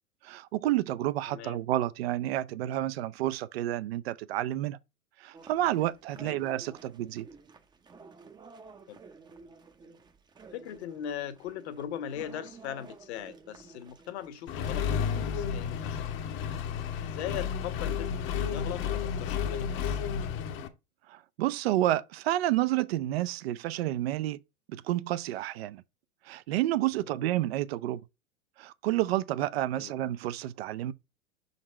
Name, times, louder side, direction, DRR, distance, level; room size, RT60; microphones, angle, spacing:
voice 1, 0.2-4.8 5.2-7.3 21.1-24.4 24.7-25.8 26.3-28.0 28.6-30.9, right 14 dB, 45° right, 0.6 m, -30 dB
voice 2, 1.3-1.6 6.2-6.5 8.9-9.0 10.5-16.1 17.0-20.0 26.9-27.3 29.7-29.9, left 10 dB, 50° left, 1.2 m, -40 dB
sound 1, 5.3-15.2, right 4 dB, 10° right, 0.7 m, -52 dB
Accelerating revving vroom, 14.5-20.7, left 7 dB, 30° left, 0.9 m, -32 dB
6.3 x 4.1 x 4.4 m
figure-of-eight pair, 105°, 42 cm